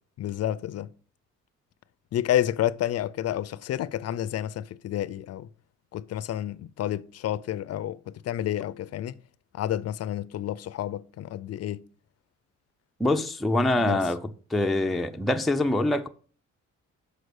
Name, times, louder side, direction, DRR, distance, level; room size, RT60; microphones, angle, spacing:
voice 1, 0.2-0.9 2.1-5.5 5.9-9.2 9.5-11.8 13.8-14.0, left 12 dB, 55° left, 0.5 m, -30 dB
voice 2, 13.0-16.1, left 1 dB, ahead, 0.5 m, -25 dB
6.5 x 5.0 x 6.3 m
cardioid pair, 90°, 30 cm